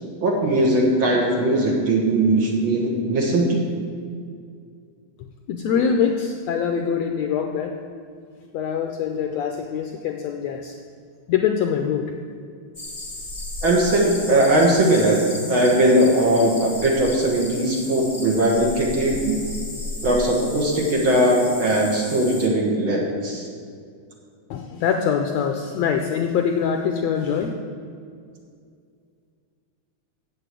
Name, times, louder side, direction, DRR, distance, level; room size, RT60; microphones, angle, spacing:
voice 1, 0.2-3.7 13.6-15.2 15.5-19.4 20.0-23.5, right 1 dB, 50° right, -1 dB, 1.7 m, -19 dB
voice 2, 5.5-7.8 8.5-10.8 11.3-12.1 24.5-27.5, left 7 dB, 90° left, 4 dB, 1.5 m, -24 dB
sound 1, 12.7-22.5, left 2 dB, 50° left, 0.4 m, -34 dB
8.3 x 7.9 x 8.2 m, 2.3 s
omnidirectional pair, 3.7 m